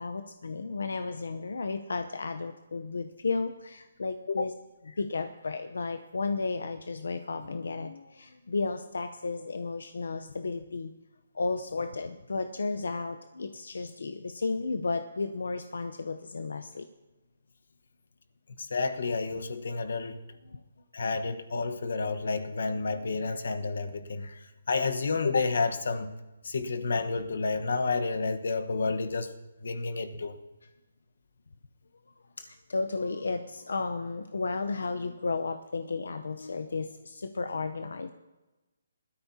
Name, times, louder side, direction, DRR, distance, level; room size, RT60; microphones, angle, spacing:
voice 1, 0.0-4.5 4.9-10.9 11.3-16.9 20.5-20.6 32.4-38.1, left 3 dB, 85° left, 8 dB, 0.7 m, -33 dB
voice 2, 18.6-20.2 20.9-24.4 24.7-26.1 26.4-29.3 29.6-30.3, left 4 dB, 65° left, 8 dB, 1.1 m, -30 dB
20.0 x 13.0 x 2.8 m, 1.1 s
hypercardioid pair, 170°, 0 cm